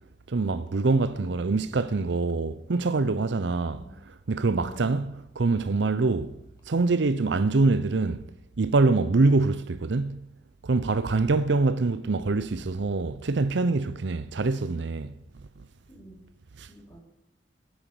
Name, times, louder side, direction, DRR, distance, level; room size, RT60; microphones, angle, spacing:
voice 1, 0.3-5.1 5.4-6.3 6.7-8.2 8.6-10.2 10.6-15.1 16.6-16.7, right 3 dB, 65° right, 0.6 m, -25 dB
voice 2, 3.6-3.9 4.5-4.9 10.8-11.0 15.9-16.3 16.7-17.0, right 1 dB, 20° left, 3.8 m, -48 dB
11.5 x 10.0 x 6.9 m
head